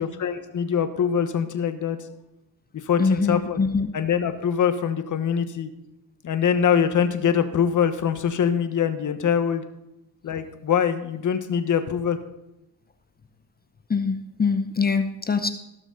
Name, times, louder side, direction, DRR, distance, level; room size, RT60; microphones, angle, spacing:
voice 1, 0.0-2.0 2.9-3.6 3.9-5.7 6.2-9.6 10.2-12.2, left 8 dB, 50° left, 9 dB, 1.2 m, -23 dB
voice 2, 3.0-3.9 13.9-15.5, left 4 dB, 25° left, 8 dB, 0.7 m, -23 dB
17.0 x 6.1 x 4.0 m, 0.90 s
cardioid pair, 90°, 40 cm